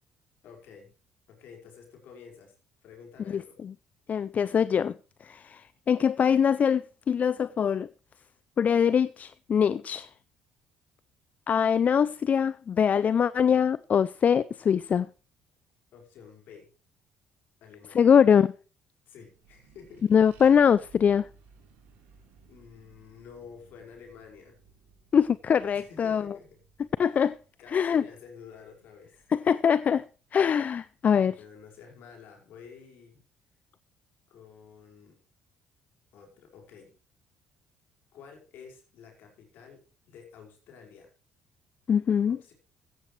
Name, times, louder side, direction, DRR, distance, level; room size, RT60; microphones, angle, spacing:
voice 1, 0.4-1.0 1.3-2.6 2.8-3.6 15.9-16.7 17.6-18.1 19.1-20.1 22.5-24.6 25.7-26.5 27.1-27.3 27.6-29.2 31.2-33.2 34.3-35.2 36.1-37.0 38.1-41.1 42.3-42.5, left 6 dB, 65° left, 5.2 m, -50 dB
voice 2, 3.3-3.7 4.1-4.9 5.2-7.9 8.6-10.1 11.5-15.1 17.9-18.5 20.1-21.3 25.1-26.3 27.0-27.4 27.7-28.0 29.3-30.1 30.3-31.4 41.9-42.4, left 7 dB, 45° left, 0.5 m, -23 dB
Accelerating revving vroom, 19.2-30.1, right 4 dB, 75° right, 4.0 m, -59 dB
15.5 x 13.5 x 3.3 m
hypercardioid pair, 55°, 4 cm